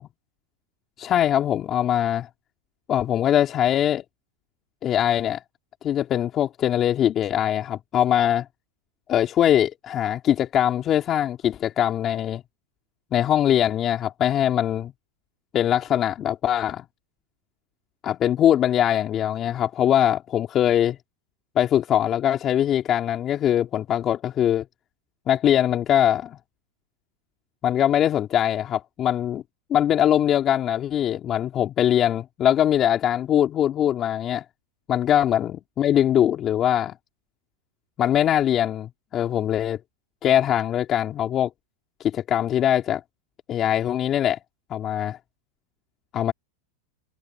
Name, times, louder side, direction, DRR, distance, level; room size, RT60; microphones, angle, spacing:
voice 1, 1.0-2.3 2.9-4.0 4.8-5.4 5.8-8.5 9.1-12.4 13.1-14.9 15.5-16.9 18.0-21.0 21.5-24.6 25.3-26.4 27.6-29.4 29.7-34.4 34.9-36.9 38.0-39.8 40.2-41.5 42.0-43.0 43.5-44.4 44.7-45.2 46.1-46.3, left 10 dB, 35° left, 3.0 m, -22 dB
hypercardioid pair, 115°, 0 cm